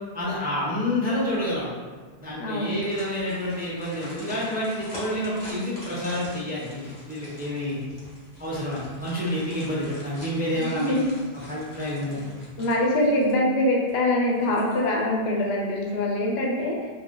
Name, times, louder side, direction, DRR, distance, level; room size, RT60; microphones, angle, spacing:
voice 1, 0.1-1.7 2.2-7.8 8.4-10.9 11.5-12.4, left 1 dB, 10° right, -9 dB, 0.5 m, -28 dB
voice 2, 2.4-2.7 10.5-11.1 12.1-12.2 12.6-16.9, left 1 dB, 75° left, -2 dB, 0.8 m, -24 dB
sound 1, 2.6-13.5 13.9-14.0 14.4-15.1 15.4-15.5, left 1 dB, 50° left, 1.0 m, -44 dB
2.5 x 2.1 x 3.6 m, 1.5 s
omnidirectional pair, 1.0 m